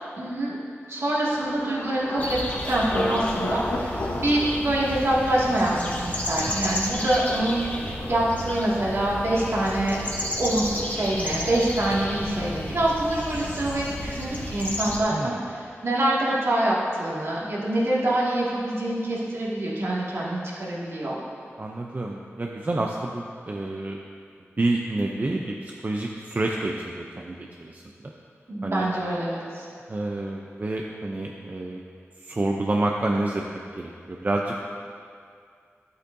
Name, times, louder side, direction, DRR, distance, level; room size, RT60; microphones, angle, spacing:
voice 1, 0.2-0.6 0.9-2.4 2.7-10.0 10.4-21.2 28.5-29.6, right 1 dB, 65° right, -6 dB, 2.1 m, -25 dB
Thunder, 1.3-17.1 17.3-18.0 18.4-18.6, left 1 dB, 85° left, 1.0 m, -37 dB
sound 1, 2.2-15.0, left 1 dB, 35° left, 1.2 m, -32 dB
voice 2, 15.1-15.5 21.6-24.0 24.6-28.1 28.6-28.8 29.9-31.8 32.2-33.4 33.8-34.5, right 2 dB, 35° right, 0 dB, 0.5 m, -28 dB
11.0 x 8.3 x 2.7 m, 2.3 s
wide cardioid pair, 75°, 5 cm